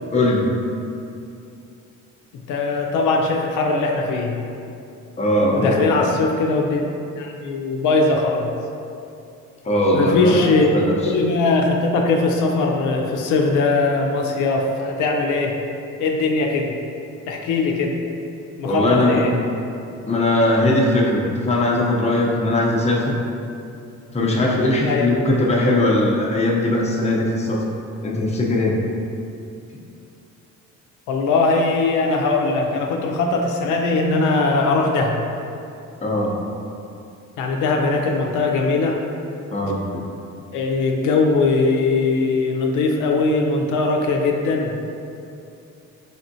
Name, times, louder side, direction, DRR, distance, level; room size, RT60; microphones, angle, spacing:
voice 1, 0.1-0.5 5.2-6.0 9.6-11.0 18.6-19.2 20.1-23.2 24.1-27.6 28.0-28.8 36.0-36.4 39.5-39.8, left 1 dB, 20° left, -3 dB, 0.7 m, -19 dB
voice 2, 2.3-4.4 5.5-6.8 7.2-8.5 9.9-10.7 11.0-15.6 16.0-16.8 17.3-18.0 18.6-19.4 24.8-25.1 31.1-35.2 37.4-39.0 40.5-44.8, left 3 dB, 85° left, 1 dB, 0.5 m, -20 dB
4.2 x 3.5 x 2.6 m, 2.6 s
cardioid pair, 90°, 30 cm